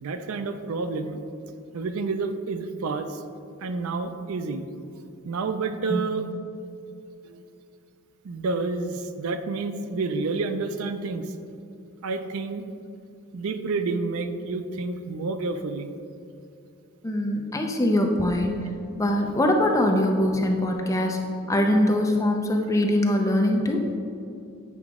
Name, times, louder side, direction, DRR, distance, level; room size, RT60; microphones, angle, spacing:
voice 1, 0.0-1.2 1.7-3.2 3.6-4.7 5.2-6.2 7.2-7.4 8.2-11.3 12.0-12.6 13.3-15.9, right 3 dB, 75° right, 9 dB, 0.4 m, -29 dB
voice 2, 17.0-18.6 19.0-21.2 21.5-23.9, left 1 dB, 15° left, 2 dB, 0.5 m, -22 dB
8.3 x 4.9 x 3.6 m, 2.6 s
head